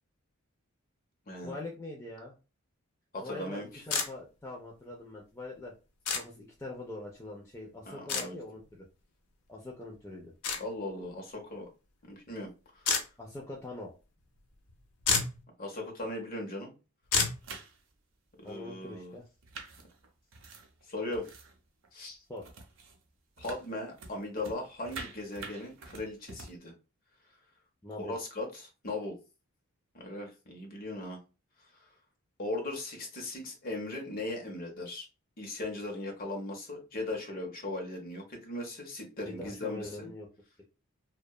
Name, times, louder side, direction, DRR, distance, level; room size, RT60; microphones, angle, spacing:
voice 1, 1.4-2.3 3.2-5.7 6.1-8.9 9.5-10.3 13.2-13.9 18.4-19.2 22.3-22.5 27.8-28.2 39.2-40.3, left 2 dB, 10° left, -2 dB, 0.3 m, -43 dB
voice 2, 3.1-3.8 7.8-8.4 10.6-11.7 12.0-12.9 15.6-16.7 18.4-19.1 20.9-21.3 21.9-22.2 23.4-26.7 28.0-29.2 29.9-31.2 32.4-35.1 35.4-40.1, left 2 dB, 40° left, 1 dB, 0.7 m, -38 dB
sound 1, 3.9-4.1 6.1-6.2 8.1-8.3 10.4-10.6 12.9-13.0 14.7-14.8 15.0-15.4 17.1-17.4, left 5 dB, 90° left, 0.6 m, -28 dB
sound 2, 17.3-17.9 18.4-18.5 19.2-21.6 21.8-22.1 22.4-23.0 23.4-26.6, right 3 dB, 60° right, 0.5 m, -47 dB
2.7 x 2.1 x 2.2 m, 0.31 s
head